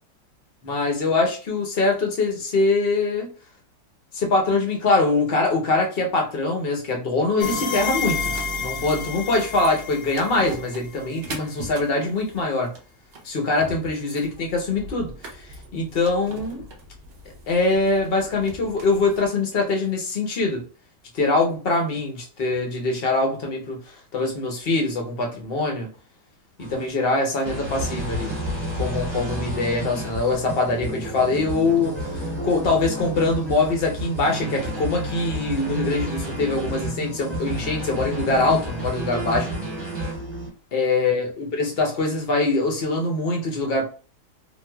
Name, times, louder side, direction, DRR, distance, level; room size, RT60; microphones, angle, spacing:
voice 1, 0.6-3.3 4.1-12.7 13.2-16.6 17.5-20.6 21.1-25.9 26.6-28.3 28.8-39.9 40.7-43.9, left 3 dB, 55° left, 0.6 m, -23 dB
sound 1, 7.4-11.1, left 4 dB, 70° left, 1.1 m, -30 dB
sound 2, 8.3-19.3, right 2 dB, 65° right, 0.6 m, -41 dB
sound 3, 26.6-26.9 27.5-40.5, right 1 dB, 10° right, 0.8 m, -30 dB
3.6 x 2.5 x 2.2 m
omnidirectional pair, 1.9 m